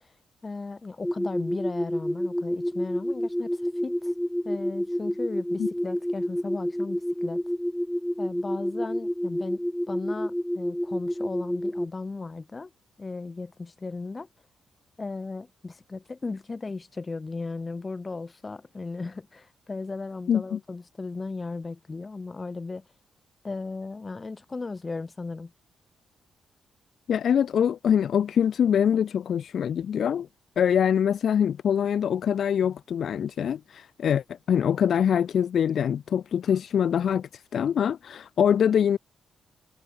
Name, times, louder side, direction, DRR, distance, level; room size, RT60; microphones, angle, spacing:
voice 1, 0.4-4.1 4.4-7.4 8.2-12.7 13.0-14.3 15.0-22.8 23.4-25.5, left 3 dB, 25° left, 7.3 m, -36 dB
sound 1, 1.0-11.9, equal, 5° left, 2.5 m, -29 dB
voice 2, 20.3-20.6 27.1-30.3 30.6-39.0, left 8 dB, 65° left, 1.1 m, -24 dB
cardioid pair, 115°, 0 cm